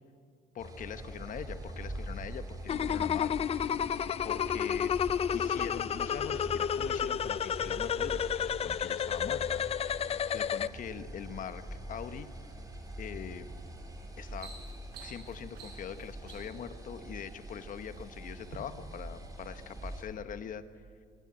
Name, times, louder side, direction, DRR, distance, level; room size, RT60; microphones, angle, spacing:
voice 1, 0.5-3.3 4.2-4.9 5.3-9.6 10.3-12.3 13.0-13.5 14.2-14.5 15.0-20.6, left 8 dB, 50° left, 11 dB, 1.2 m, -42 dB
sound 1, 0.6-20.0, right 1 dB, 20° right, 3.7 m, -44 dB
sound 2, 2.7-10.7, left 8 dB, 35° left, 0.4 m, -31 dB
sound 3, 13.5-13.7 14.1-16.7 17.5-18.0 18.4-18.6, right 6 dB, 75° right, 5.7 m, -50 dB
24.5 x 12.0 x 8.8 m, 2.2 s
cardioid pair, 110°, 17 cm